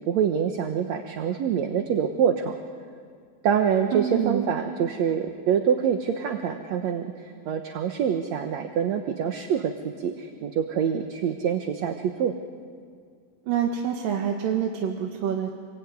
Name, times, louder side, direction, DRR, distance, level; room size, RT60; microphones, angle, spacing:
voice 1, 0.1-2.6 3.4-12.3, right 8 dB, 65° right, 5 dB, 2.1 m, -25 dB
voice 2, 3.9-4.4 13.5-15.5, right 8 dB, 80° right, 1 dB, 3.3 m, -26 dB
27.5 x 22.0 x 9.6 m, 2.1 s
omnidirectional pair, 4.0 m